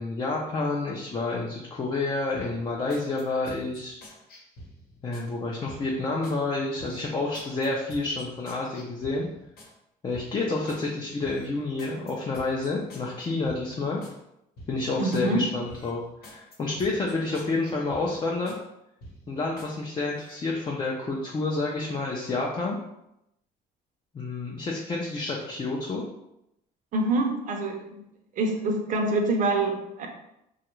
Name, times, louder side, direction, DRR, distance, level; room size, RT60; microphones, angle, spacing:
voice 1, 0.0-4.0 5.0-9.3 10.0-14.0 14.7-18.6 19.3-22.8 24.1-26.1, left 3 dB, 25° left, -2 dB, 0.5 m, -29 dB
sound 1, 2.3-5.3 5.7-6.4 6.8-9.7 10.1-10.9 11.2-14.2 14.6-15.3 15.7-18.6 19.0-19.7 20.1-20.4, equal, 65° left, 1.0 m, -48 dB
voice 2, 15.0-15.5 26.9-28.0 28.4-30.1, right 2 dB, 50° right, 3 dB, 0.6 m, -26 dB
3.2 x 2.4 x 3.0 m, 0.83 s
cardioid pair, 110°, 17 cm